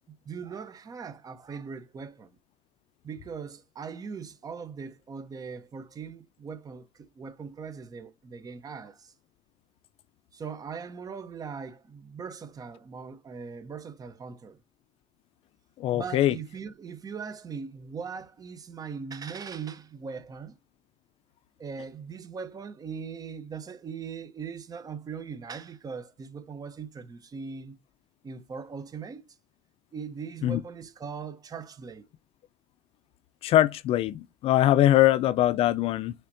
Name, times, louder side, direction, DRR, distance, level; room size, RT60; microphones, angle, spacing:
voice 1, 0.1-2.4 3.0-9.1 10.3-14.6 15.9-20.6 21.6-27.8 28.2-29.4 29.9-32.0, right 6 dB, 35° right, 0.9 m, -40 dB
voice 2, 15.8-16.3 30.4-30.6 33.4-36.1, left 13 dB, 60° left, 0.5 m, -22 dB
5.6 x 3.5 x 2.7 m
supercardioid pair, 90°, 11 cm